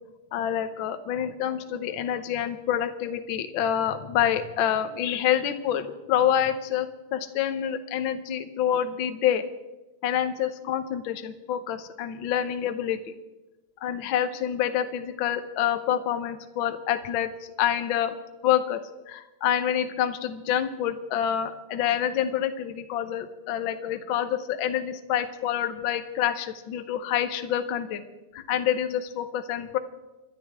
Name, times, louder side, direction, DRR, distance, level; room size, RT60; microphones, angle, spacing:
voice 1, 0.3-9.4 10.0-13.0 13.8-17.3 17.6-18.2 18.4-18.8 19.1-28.0 28.3-29.8, left 10 dB, 70° left, 9 dB, 1.2 m, -27 dB
28.5 x 11.5 x 3.6 m, 1.1 s
omnidirectional pair, 3.4 m